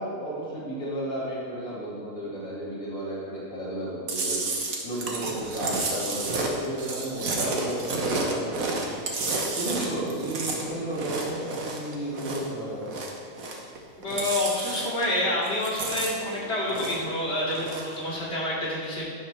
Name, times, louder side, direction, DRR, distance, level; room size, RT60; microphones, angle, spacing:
voice 1, 0.0-4.4 4.8-8.9 9.6-13.0, right 1 dB, 80° left, -7 dB, 2.6 m, -33 dB
Chewing mastication, 4.1-12.5 12.8-13.8 14.0-15.2 15.5-17.1 17.5-18.0, right 3 dB, 85° right, 1.7 m, -31 dB
voice 2, 14.0-19.0, left 1 dB, 50° left, -6 dB, 2.8 m, -28 dB
11.5 x 10.5 x 3.3 m, 2.6 s
omnidirectional pair, 1.4 m